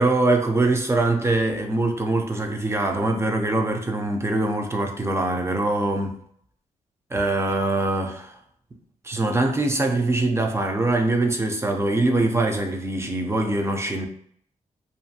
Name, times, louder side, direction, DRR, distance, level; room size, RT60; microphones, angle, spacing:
voice 1, 0.0-6.2 7.1-8.4 9.0-14.1, right 2 dB, 20° right, 0.4 m, -23 dB
2.5 x 2.4 x 2.7 m
cardioid pair, 105°, 13 cm